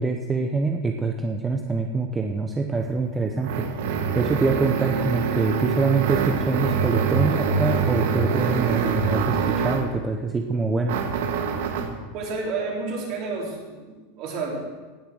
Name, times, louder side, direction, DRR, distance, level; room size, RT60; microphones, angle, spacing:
voice 1, 0.0-3.6 4.1-11.0, right 3 dB, 10° right, 3 dB, 0.7 m, -25 dB
sound 1, 2.8-10.0 10.9-12.0, right 6 dB, 70° right, 1.6 m, -25 dB
voice 2, 12.1-14.6, right 3 dB, 40° right, -3 dB, 4.1 m, -30 dB
18.0 x 6.8 x 6.4 m, 1.3 s
supercardioid pair, 160°, 0 cm